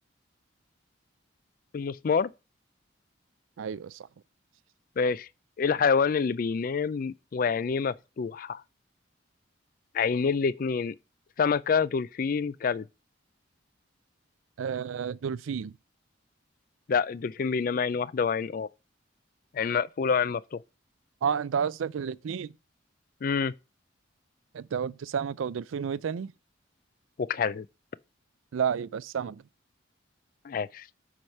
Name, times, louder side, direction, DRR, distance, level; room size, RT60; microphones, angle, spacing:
voice 1, 1.7-2.3 5.0-5.3 5.6-8.6 9.9-10.9 11.4-12.8 16.9-18.7 19.5-20.6 23.2-23.5 27.2-27.7 30.4-30.9, left 5 dB, 45° left, 0.3 m, -27 dB
voice 2, 3.6-4.0 14.6-15.7 21.2-22.5 24.5-26.3 28.5-29.4, right 7 dB, 80° right, 0.4 m, -31 dB
8.8 x 4.8 x 5.5 m
head